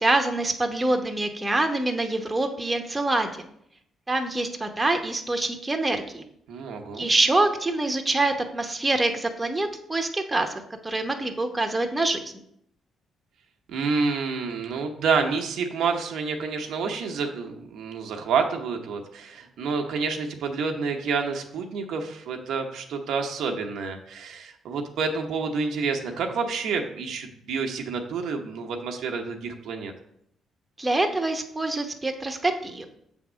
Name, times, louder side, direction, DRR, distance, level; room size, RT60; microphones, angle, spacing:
voice 1, 0.0-3.5 4.1-6.2 7.0-10.5 10.8-12.3 30.8-32.8, right 2 dB, 15° right, 4 dB, 0.9 m, -25 dB
voice 2, 6.5-7.1 13.7-29.9, right 5 dB, 80° right, 3 dB, 0.9 m, -28 dB
7.1 x 3.5 x 6.1 m, 0.71 s
cardioid pair, 90°, 0 cm